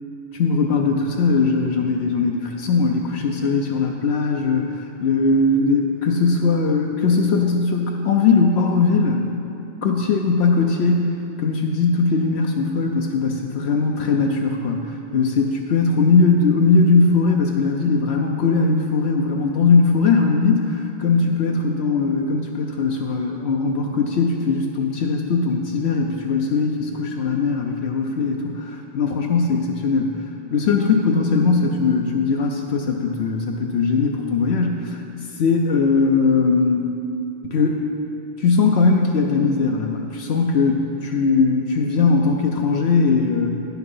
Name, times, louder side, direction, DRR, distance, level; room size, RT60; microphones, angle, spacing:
voice 1, 0.4-9.2 9.8-30.2 30.5-35.0 35.4-37.0 37.4-37.9 38.4-43.5, left 4 dB, 75° left, 1 dB, 0.9 m, -20 dB
9.8 x 6.0 x 5.5 m, 2.8 s
omnidirectional pair, 1.1 m